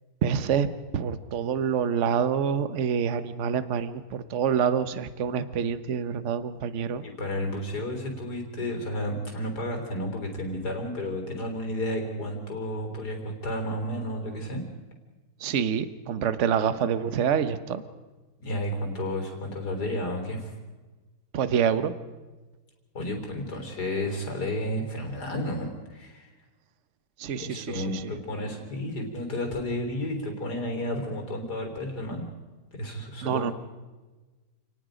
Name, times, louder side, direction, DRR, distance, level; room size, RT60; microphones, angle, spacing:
voice 1, 0.2-0.7 0.9-7.0 15.4-17.8 21.3-21.9 27.2-28.0 33.2-33.5, right 7 dB, 45° right, 12 dB, 1.1 m, -26 dB
voice 2, 7.0-14.6 18.4-20.5 22.9-26.3 27.4-32.2 32.7-33.5, left 1 dB, 50° left, 4 dB, 4.2 m, -32 dB
28.5 x 19.5 x 5.1 m, 1.2 s
omnidirectional pair, 2.3 m